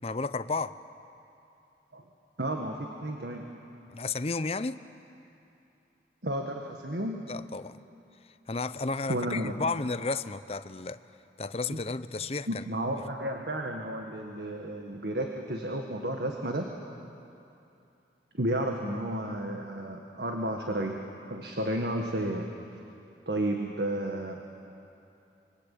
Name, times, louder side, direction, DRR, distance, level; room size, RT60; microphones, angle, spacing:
voice 1, 0.0-0.7 3.9-4.8 7.3-7.8 8.5-11.0 11.4-12.6, left 3 dB, 35° left, 13 dB, 0.6 m, -32 dB
voice 2, 2.4-3.5 6.2-7.3 9.1-9.5 11.7-11.8 12.5-16.7 18.3-21.0 21.3-22.5 23.3-24.4, right 1 dB, 70° right, 2 dB, 1.8 m, -32 dB
25.5 x 24.5 x 8.6 m, 2.7 s
head